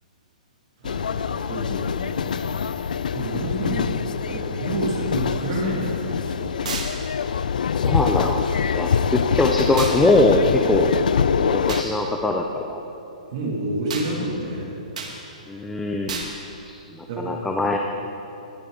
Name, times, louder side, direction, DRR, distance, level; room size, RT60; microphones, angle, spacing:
sound 1, 0.8-11.8, left 7 dB, 75° left, 0.4 m, -24 dB
voice 1, 0.8-2.5 3.1-6.5 11.3-11.4 13.3-14.7 17.1-17.4, right 1 dB, 35° right, -3 dB, 2.0 m, -29 dB
sound 2, 6.6-6.9 9.8-10.0 11.7-11.9 13.9-14.1 15.0-15.1 16.1-16.3, right 5 dB, 60° right, 1.7 m, -31 dB
voice 2, 7.7-8.5 8.7-10.9 11.4-12.8 15.5-16.3 16.6-17.8, left 2 dB, 5° left, 1 dB, 0.3 m, -22 dB
20.5 x 9.3 x 3.6 m, 2.8 s
hypercardioid pair, 180°, 4 cm